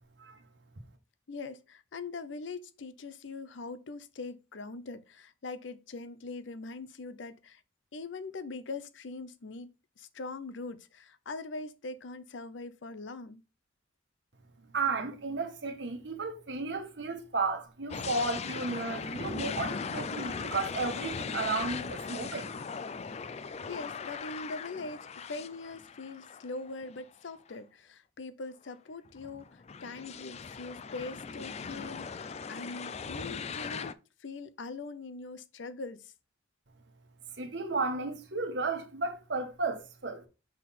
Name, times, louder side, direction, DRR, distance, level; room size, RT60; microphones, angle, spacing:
voice 1, 1.3-7.6 7.9-13.4 23.2-23.4 23.7-36.1, left 3 dB, 75° left, 0.6 m, -42 dB
voice 2, 14.7-22.6 37.4-40.2, right 3 dB, 65° right, 1.2 m, -33 dB
sound 1, 17.9-27.0 27.5-27.6 29.0-33.9, left 5 dB, 35° left, 0.4 m, -39 dB
6.4 x 3.7 x 4.1 m
head